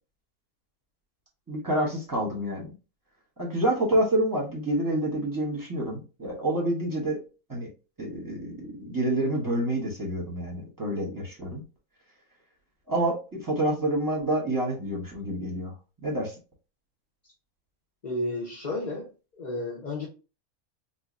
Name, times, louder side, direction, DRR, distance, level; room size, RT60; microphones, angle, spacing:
voice 1, 1.5-2.7 3.4-7.2 7.5-7.7 8.0-11.6 12.9-15.7 16.0-16.3, right 1 dB, 15° right, 1.1 m, -28 dB
voice 2, 18.0-20.1, left 1 dB, 35° left, 0.9 m, -32 dB
4.9 x 2.3 x 2.6 m
omnidirectional pair, 1.5 m